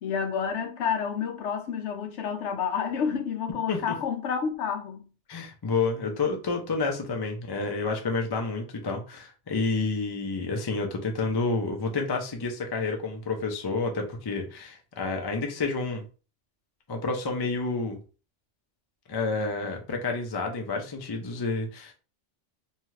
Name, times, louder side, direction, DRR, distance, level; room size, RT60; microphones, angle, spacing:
voice 1, 0.0-5.1, left 7 dB, 70° left, 0.9 m, -29 dB
voice 2, 5.3-16.0 16.9-18.0 19.1-21.9, left 3 dB, 40° left, 0.3 m, -29 dB
2.7 x 2.3 x 3.1 m
omnidirectional pair, 1.3 m